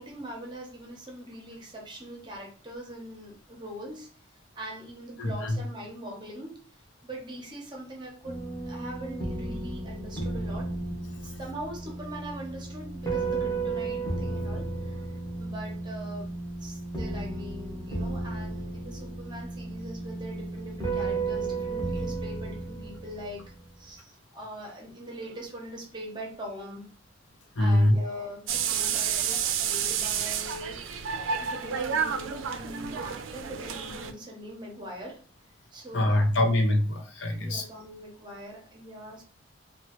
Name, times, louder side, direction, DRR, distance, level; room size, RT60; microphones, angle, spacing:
voice 1, 0.0-4.1 4.6-10.7 11.2-16.3 16.6-23.4 23.8-26.9 27.6-35.2 35.7-36.3 37.0-37.1 37.4-39.2, equal, 25° right, -1 dB, 0.7 m, -42 dB
voice 2, 5.2-5.6 27.6-28.0 35.9-37.6, left 1 dB, 70° left, 2 dB, 0.6 m, -24 dB
sound 1, 8.2-23.7, right 3 dB, 15° left, 0.8 m, -34 dB
sound 2, 28.5-34.1, right 7 dB, 85° right, 0.4 m, -30 dB
2.9 x 2.2 x 2.9 m, 0.39 s
head